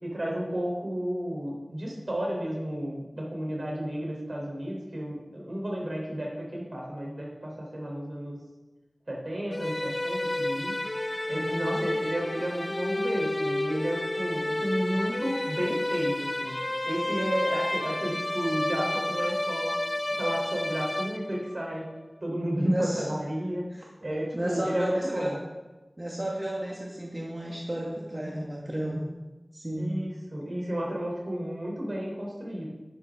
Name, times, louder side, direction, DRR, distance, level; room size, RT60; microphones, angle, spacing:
voice 1, 0.0-8.4 9.1-10.7 11.3-16.6 16.8-19.8 20.1-21.9 22.2-23.6 24.0-25.4 29.8-32.7, equal, 65° right, -2 dB, 3.8 m, -32 dB
sound 1, 9.5-21.6, left 1 dB, 35° left, 0.4 m, -30 dB
voice 2, 11.3-11.8 22.6-23.0 24.3-25.4 26.0-29.1 29.5-29.9, right 1 dB, 30° right, -3 dB, 1.8 m, -32 dB
10.5 x 10.5 x 3.7 m, 1.1 s
wide cardioid pair, 50°, 0 cm